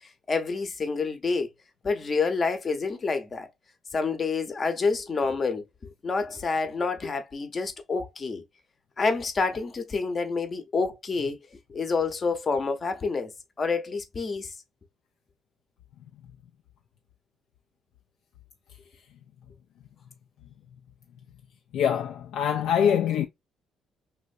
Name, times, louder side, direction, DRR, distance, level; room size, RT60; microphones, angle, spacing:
voice 1, 0.3-1.5 1.8-3.5 3.9-8.4 9.0-11.4 11.7-13.3 13.6-14.6, left 4 dB, 40° left, 0.7 m, -28 dB
voice 2, 21.7-23.3, left 8 dB, 80° left, 0.3 m, -24 dB
3.2 x 2.5 x 2.5 m
cardioid pair, 95°, 0 cm